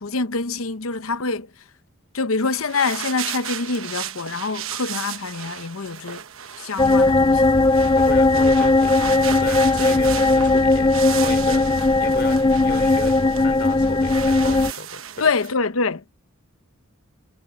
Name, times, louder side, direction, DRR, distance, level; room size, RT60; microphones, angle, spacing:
voice 1, 0.0-1.5 2.1-6.2 6.6-7.5 15.2-16.1, left 4 dB, 85° left, 0.9 m, -25 dB
sound 1, 2.4-15.5, right 9 dB, 75° right, 1.1 m, -35 dB
sound 2, 6.8-14.7, left 2 dB, 20° left, 0.5 m, -18 dB
voice 2, 7.7-8.9 9.4-15.3, left 3 dB, 55° left, 3.6 m, -35 dB
head